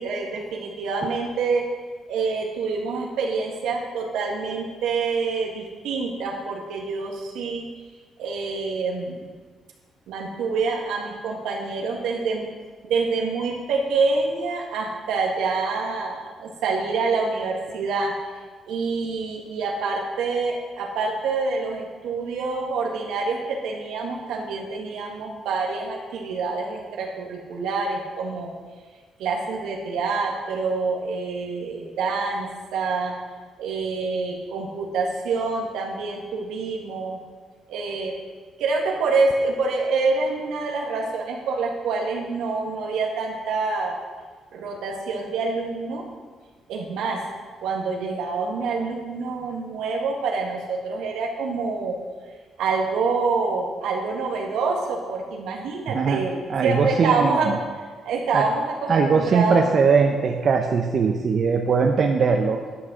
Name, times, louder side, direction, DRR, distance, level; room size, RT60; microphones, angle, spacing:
voice 1, 0.0-1.6 2.1-7.7 8.2-9.3 10.1-12.5 12.8-18.1 18.7-28.5 29.2-33.1 33.6-37.2 37.7-38.1 38.6-44.0 44.5-46.0 46.7-47.2 47.6-52.0 52.6-57.5 58.0-59.6, right 4 dB, 85° right, 0 dB, 1.9 m, -26 dB
voice 2, 56.5-57.6 58.3-58.5 58.9-62.6, right 5 dB, 50° right, 3 dB, 0.8 m, -20 dB
11.0 x 6.3 x 6.4 m, 1.5 s
cardioid pair, 90°, 0 cm